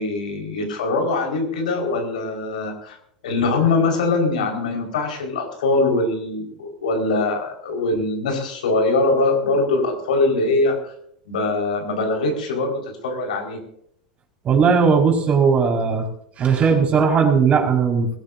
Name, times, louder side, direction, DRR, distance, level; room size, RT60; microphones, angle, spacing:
voice 1, 0.0-3.0 3.2-10.8 11.3-13.6, left 3 dB, 70° left, 2 dB, 5.0 m, -22 dB
voice 2, 14.4-16.1 16.4-18.2, right 5 dB, 30° right, 2 dB, 5.2 m, -17 dB
22.0 x 16.5 x 2.7 m, 0.71 s
hypercardioid pair, 90°, 4 cm